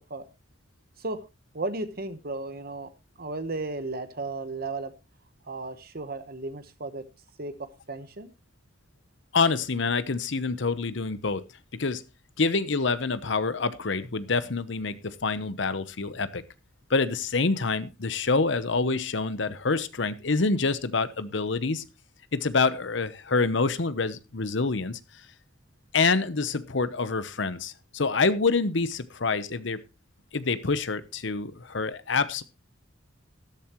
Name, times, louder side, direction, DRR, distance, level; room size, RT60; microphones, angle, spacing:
voice 1, 1.5-2.9 3.2-4.9 5.4-7.0 7.4-8.3, right 2 dB, 50° right, 10 dB, 1.1 m, -34 dB
voice 2, 9.3-11.4 11.7-12.0 12.4-16.4 16.9-21.8 22.3-25.0 25.9-29.8 30.3-32.4, left 4 dB, 65° left, 14 dB, 0.9 m, -26 dB
13.5 x 12.5 x 3.1 m, 0.28 s
head